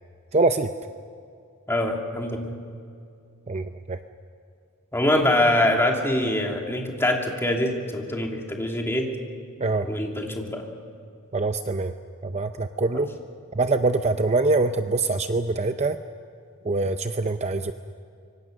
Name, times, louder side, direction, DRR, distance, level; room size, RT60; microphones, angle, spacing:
voice 1, 0.3-0.7 3.5-4.0 9.6-9.9 11.3-11.9 12.2-13.1 13.5-16.0 16.6-17.7, right 3 dB, 30° right, 8 dB, 0.6 m, -24 dB
voice 2, 1.7-2.5 4.9-9.1 9.8-10.6, left 1 dB, 10° left, 1 dB, 2.7 m, -24 dB
25.5 x 24.5 x 6.6 m, 2.3 s
head